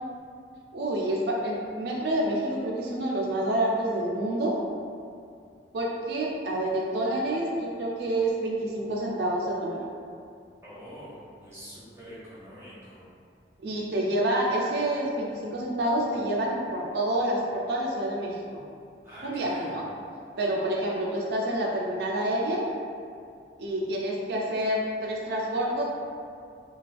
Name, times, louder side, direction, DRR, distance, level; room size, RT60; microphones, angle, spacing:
voice 1, 0.7-4.6 5.7-9.8 13.6-18.4 19.2-19.9 20.4-22.7 23.6-25.8, right 1 dB, 60° right, -3 dB, 0.4 m, -28 dB
voice 2, 10.6-13.0 19.0-19.8, equal, 15° right, -11 dB, 0.7 m, -45 dB
2.3 x 2.2 x 2.4 m, 2.3 s
head